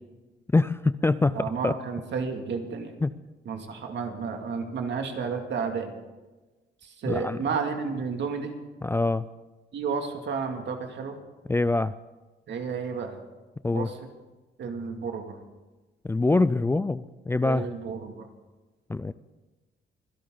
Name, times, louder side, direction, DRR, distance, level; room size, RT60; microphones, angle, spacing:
voice 1, 0.5-1.7 3.0-3.1 7.1-7.4 8.8-9.2 11.5-11.9 13.6-14.0 16.0-17.7 18.9-19.1, left 3 dB, 10° left, 15 dB, 0.4 m, -24 dB
voice 2, 1.4-2.9 3.5-5.9 7.0-8.5 9.7-11.2 12.5-13.2 13.7-13.9 14.6-15.4 17.4-18.1, right 5 dB, 60° right, 4 dB, 2.5 m, -31 dB
25.0 x 11.5 x 3.9 m, 1.2 s
cardioid pair, 90°, 20 cm